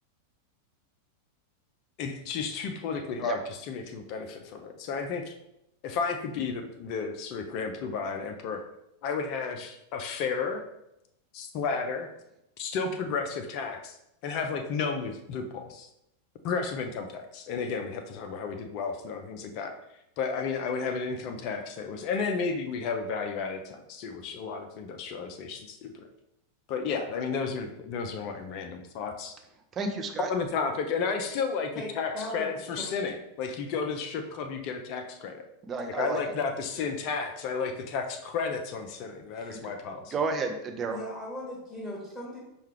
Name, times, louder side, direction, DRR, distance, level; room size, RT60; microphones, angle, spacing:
voice 1, 2.0-5.4 5.8-8.6 9.0-10.6 11.3-12.1 12.6-14.0 14.2-15.9 16.4-19.7 20.2-26.1 26.7-29.3 30.3-35.4 35.9-40.1, left 5 dB, 40° left, 5 dB, 0.4 m, -32 dB
voice 2, 29.7-30.3 35.6-36.2 39.5-39.7 40.1-41.0, right 4 dB, 25° right, 4 dB, 0.5 m, -31 dB
voice 3, 31.7-32.5 32.8-32.9 39.3-39.5 40.9-42.4, left 1 dB, 5° right, -6 dB, 1.2 m, -38 dB
5.5 x 2.3 x 3.2 m, 0.84 s
figure-of-eight pair, 90°, 0 cm